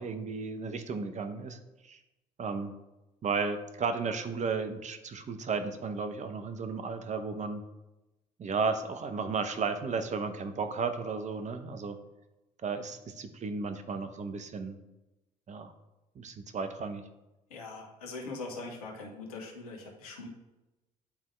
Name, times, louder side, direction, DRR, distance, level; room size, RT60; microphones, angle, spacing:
voice 1, 0.0-2.0 2.4-2.7 3.2-7.6 8.4-12.0 12.6-14.8 15.5-15.7 16.2-17.0, right 4 dB, 40° right, 8 dB, 0.9 m, -34 dB
voice 2, 17.5-20.3, left 3 dB, 80° left, 1 dB, 1.2 m, -42 dB
9.9 x 3.6 x 3.2 m, 1.0 s
hypercardioid pair, 50°, 19 cm